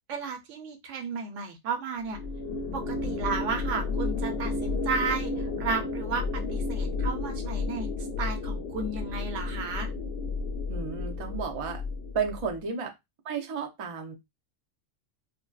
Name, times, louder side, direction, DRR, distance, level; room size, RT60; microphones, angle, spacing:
voice 1, 0.1-2.2 2.7-5.3 5.6-6.2 6.5-7.9 8.2-9.9, right 5 dB, 85° right, 6 dB, 1.0 m, -33 dB
sound 1, 2.1-12.6, left 3 dB, 65° left, 0.7 m, -32 dB
voice 2, 10.7-11.8 12.1-12.9 13.2-14.1, right 6 dB, 55° right, 3 dB, 0.4 m, -32 dB
2.6 x 2.1 x 2.2 m, 0.20 s
omnidirectional pair, 1.2 m